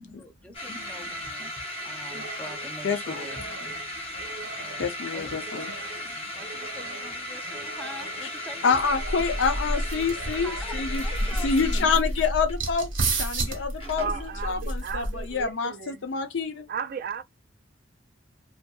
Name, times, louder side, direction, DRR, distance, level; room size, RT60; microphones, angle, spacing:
voice 1, 0.0-4.1 4.4-4.9 5.1-8.9 10.2-11.9, left 1 dB, 5° left, 0.5 m, -44 dB
sound 1, 0.5-14.4, left 1 dB, 30° left, 0.9 m, -37 dB
sound 2, 2.1-11.5, right 3 dB, 65° right, 0.8 m, -44 dB
voice 2, 2.8-3.3 4.8-5.7 8.6-11.0 11.4-16.7, left 5 dB, 65° left, 0.5 m, -27 dB
sound 3, 8.8-15.4, right 1 dB, 85° right, 1.1 m, -30 dB
voice 3, 14.0-16.1 16.7-17.2, right 6 dB, 50° right, 0.4 m, -35 dB
2.6 x 2.5 x 2.2 m
head